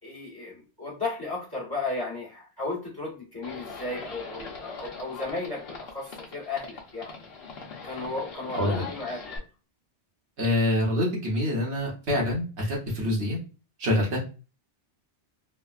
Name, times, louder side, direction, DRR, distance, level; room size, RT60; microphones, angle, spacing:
voice 1, 0.0-7.3 7.8-9.4, left 3 dB, 20° left, -4 dB, 1.1 m, -34 dB
Livestock farm animals working animals, 3.4-9.4, left 4 dB, 60° left, 0.9 m, -41 dB
voice 2, 8.5-8.8 10.4-13.4 13.8-14.2, left 1 dB, 75° right, -2 dB, 1.3 m, -26 dB
3.3 x 2.1 x 2.3 m, 0.32 s
omnidirectional pair, 1.2 m